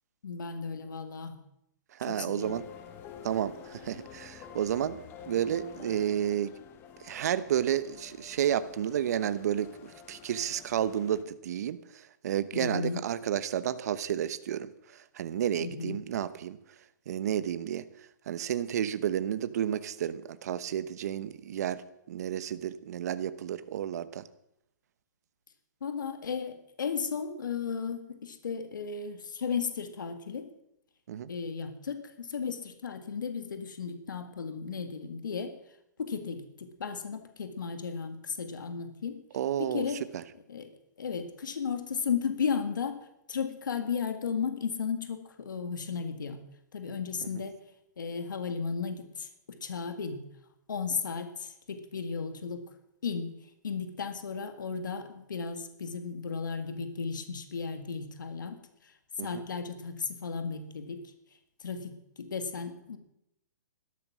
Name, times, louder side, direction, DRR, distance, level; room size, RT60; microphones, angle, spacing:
voice 1, 0.2-1.4 2.1-2.5 12.5-13.1 15.6-16.0 25.8-30.5 31.3-35.6 36.0-39.2 39.6-40.0 40.5-40.7 41.0-43.0 43.3-46.4 46.7-47.6 48.0-50.2 50.7-52.6 53.0-53.3 53.6-58.9 59.2-61.0 61.6-63.0, left 6 dB, 90° left, 7 dB, 2.0 m, -35 dB
voice 2, 1.9-2.6 3.2-5.0 5.3-6.5 7.0-16.6 17.1-17.8 18.3-24.2 31.1-31.3 39.3-39.9 40.1-40.2 59.2-59.4, right 10 dB, 60° right, 14 dB, 0.9 m, -31 dB
sound 1, 2.4-11.2, left 8 dB, 20° left, 1.0 m, -49 dB
13.0 x 12.0 x 6.2 m, 0.79 s
hypercardioid pair, 155°, 10 cm